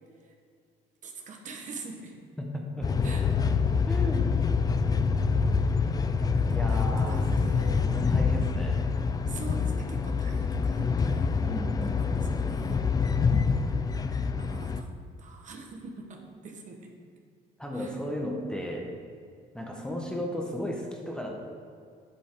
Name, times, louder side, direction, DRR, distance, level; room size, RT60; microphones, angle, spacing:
voice 1, 1.0-2.2 3.0-3.3 3.6-3.8 6.3-7.9 9.2-11.5 11.8-12.8 14.4-14.9 15.2-16.9 17.7-17.9, right 3 dB, 45° right, 2 dB, 1.1 m, -44 dB
voice 2, 2.4-2.9 3.9-4.3 6.5-7.3 7.9-8.9 11.4-13.0 17.6-19.0 19.5-21.5, left 1 dB, 5° left, 0 dB, 1.0 m, -35 dB
sound 1, 2.8-14.8, left 5 dB, 20° left, 0.4 m, -26 dB
7.3 x 5.4 x 4.5 m, 2.2 s
cardioid pair, 110°, 17 cm